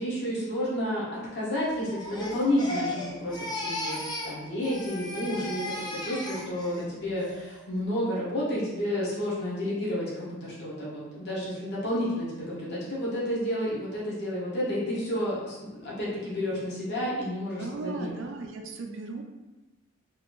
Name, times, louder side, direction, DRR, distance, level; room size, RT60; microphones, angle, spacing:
voice 1, 0.0-4.0 4.2-18.1, left 1 dB, 50° left, -7 dB, 0.9 m, -31 dB
Crying sobbing, 1.8-4.4 4.6-6.8 7.2-7.6, left 1 dB, 20° left, 0.4 m, -36 dB
voice 2, 17.6-19.2, right 3 dB, 60° right, 3 dB, 0.4 m, -36 dB
3.0 x 2.5 x 3.0 m, 1.1 s
head